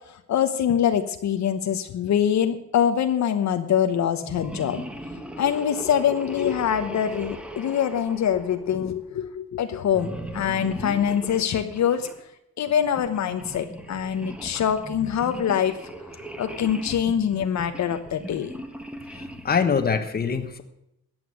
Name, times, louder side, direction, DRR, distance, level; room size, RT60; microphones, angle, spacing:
voice 1, 0.1-4.8 5.4-12.1 12.6-15.8 16.4-18.5, left 9 dB, 65° left, 8 dB, 1.1 m, -24 dB
sound 1, 4.2-9.0 9.9-12.2 12.8-19.7, right 1 dB, 5° right, 1.4 m, -38 dB
voice 2, 19.1-20.6, left 6 dB, 30° left, 7 dB, 1.4 m, -24 dB
14.0 x 9.1 x 6.4 m, 0.84 s
cardioid pair, 140°, 31 cm